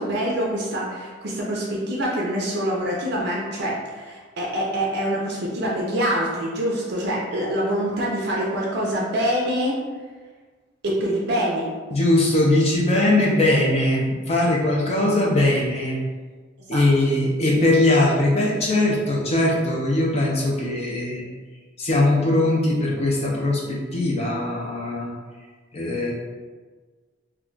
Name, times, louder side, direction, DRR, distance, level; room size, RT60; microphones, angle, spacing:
voice 1, 0.0-9.8 10.8-11.7 16.7-16.8, equal, 55° right, -3 dB, 0.5 m, -25 dB
voice 2, 11.9-16.0 16.7-21.3 21.8-25.1 25.7-26.1, left 1 dB, 30° left, -4 dB, 0.4 m, -20 dB
2.2 x 2.2 x 3.7 m, 1.4 s
head